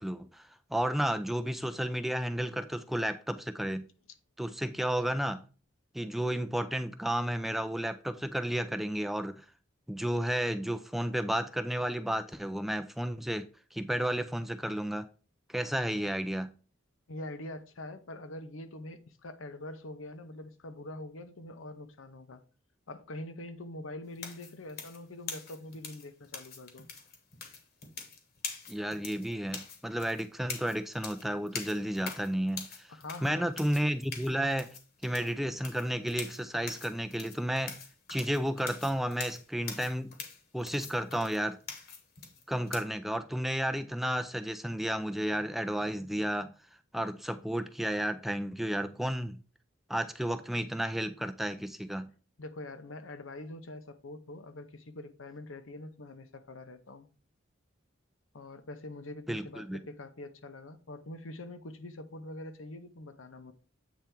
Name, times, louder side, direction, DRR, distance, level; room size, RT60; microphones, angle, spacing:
voice 1, 0.0-3.9 4.4-5.4 5.9-9.4 9.9-15.1 15.5-16.5 28.7-32.9 33.2-34.7 35.0-37.8 38.1-40.1 40.5-41.6 42.5-46.5 46.9-49.4 49.9-52.1 59.3-59.8, right 1 dB, ahead, 0.3 m, -32 dB
voice 2, 17.1-22.4 22.9-26.9 32.9-33.5 52.4-57.1 58.3-63.5, left 1 dB, 85° left, 0.8 m, -44 dB
sound 1, 24.2-42.8, left 5 dB, 50° left, 1.2 m, -44 dB
8.1 x 3.4 x 4.4 m
head